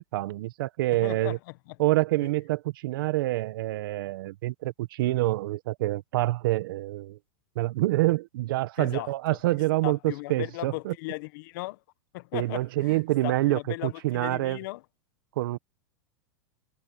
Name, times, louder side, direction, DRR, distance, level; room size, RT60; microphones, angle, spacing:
voice 1, 0.0-1.4 1.8-7.2 7.5-10.9 12.3-14.6 15.4-15.6, right 18 dB, 70° right, 1.2 m, -27 dB
voice 2, 1.0-1.8 8.8-9.1 9.8-11.8 12.1-14.8, left 21 dB, 60° left, 1.2 m, -37 dB
supercardioid pair, 135°, 12 cm